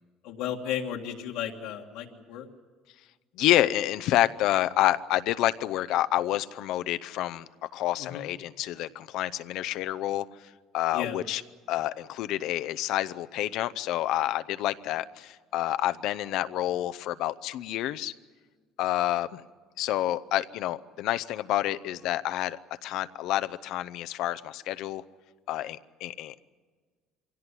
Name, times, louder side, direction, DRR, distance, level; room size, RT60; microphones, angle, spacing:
voice 1, 0.2-2.5 8.0-8.3 10.9-11.2, left 9 dB, 80° left, 0 dB, 1.8 m, -34 dB
voice 2, 3.4-10.3 10.7-11.4 11.7-18.1 18.8-19.4 19.8-25.0 25.5-26.3, left 14 dB, 60° left, 12 dB, 0.6 m, -28 dB
24.0 x 17.0 x 9.9 m, 1.5 s
cardioid pair, 155°, 0 cm